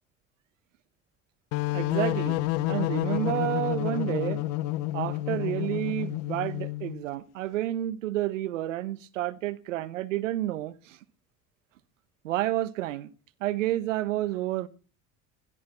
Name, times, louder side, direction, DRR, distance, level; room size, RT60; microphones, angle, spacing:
sound 1, 1.5-7.0, left 17 dB, 70° left, 0.9 m, -29 dB
voice 1, 1.7-4.4 4.9-11.0 12.2-13.1 13.4-14.7, right 14 dB, 85° right, 1.2 m, -30 dB
16.5 x 12.5 x 5.7 m
hypercardioid pair, 65°, 37 cm